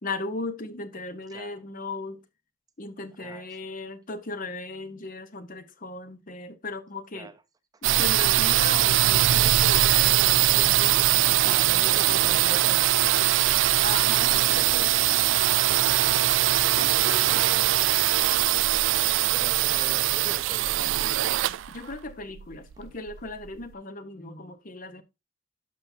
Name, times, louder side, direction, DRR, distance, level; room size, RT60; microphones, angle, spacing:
voice 1, 0.0-2.2 2.8-7.3 7.8-12.8 13.6-14.9 16.8-17.6 21.7-25.0, left 3 dB, 45° left, 0.9 m, -37 dB
voice 2, 3.2-3.6 7.1-7.4 7.7-7.8 11.4-13.0 14.2-15.7 19.3-20.9, right 3 dB, 20° right, 0.7 m, -44 dB
sound 1, 7.8-23.5, right 14 dB, 75° right, 0.3 m, -22 dB
11.5 x 5.6 x 2.7 m
head